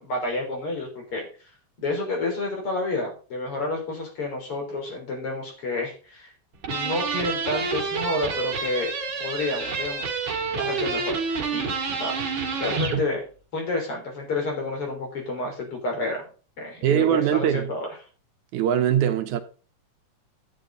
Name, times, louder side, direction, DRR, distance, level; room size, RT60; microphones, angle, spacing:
voice 1, 0.0-1.2 1.8-6.3 6.7-8.9 9.2-10.1 10.6-12.1 12.6-13.2 13.5-16.3 16.6-17.9, left 2 dB, 50° left, 4.3 m, -30 dB
sound 1, 6.6-13.0, right 4 dB, 45° right, 2.4 m, -28 dB
voice 2, 16.8-17.7 18.5-19.4, right 10 dB, 85° right, 2.5 m, -22 dB
10.5 x 10.0 x 3.9 m
omnidirectional pair, 3.3 m